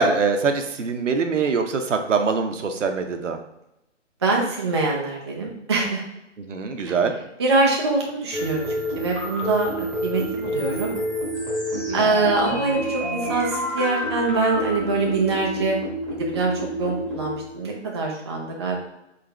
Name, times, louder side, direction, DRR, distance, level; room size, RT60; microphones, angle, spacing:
voice 1, 0.0-3.4 6.5-7.1 11.7-12.1, right 4 dB, 75° right, 6 dB, 0.8 m, -23 dB
voice 2, 4.2-6.0 6.9-7.0 7.4-8.6 9.0-11.0 11.9-15.8 16.2-18.8, right 3 dB, 25° right, -2 dB, 0.4 m, -24 dB
sound 1, 8.3-17.6, equal, ahead, 1.2 m, -28 dB
4.1 x 3.9 x 3.2 m, 0.89 s
figure-of-eight pair, 140°, 37 cm